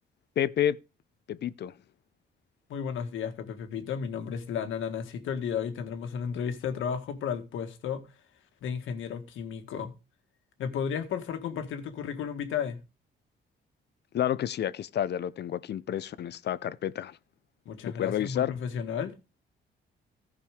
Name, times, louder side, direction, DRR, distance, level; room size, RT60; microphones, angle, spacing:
voice 1, 0.4-0.8 1.3-1.7 14.1-17.2 17.9-18.5, left 10 dB, 60° left, 0.7 m, -30 dB
voice 2, 2.7-8.0 8.6-9.9 10.6-12.8 17.6-19.1, left 7 dB, 80° left, 1.7 m, -33 dB
15.0 x 5.3 x 4.9 m
cardioid pair, 90°, 20 cm